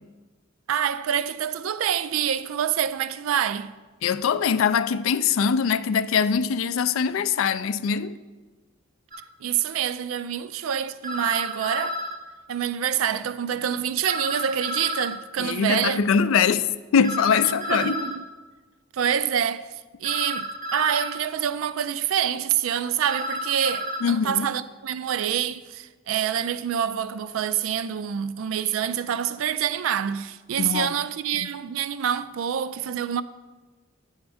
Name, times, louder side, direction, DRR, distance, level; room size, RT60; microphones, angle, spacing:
voice 1, 0.7-3.7 9.4-12.0 12.5-16.0 17.7-18.3 18.9-19.7 20.0-33.2, right 9 dB, 90° right, 0.4 m, -26 dB
voice 2, 4.0-8.2 15.4-16.7 16.9-17.9 24.0-24.5 30.6-31.0 31.4-31.5, left 6 dB, 80° left, 0.3 m, -22 dB
sound 1, 9.1-9.2 11.0-12.2 14.0-15.2 17.0-18.2 20.0-21.2 23.0-24.0, equal, 45° right, 0.7 m, -31 dB
8.6 x 3.6 x 6.1 m
head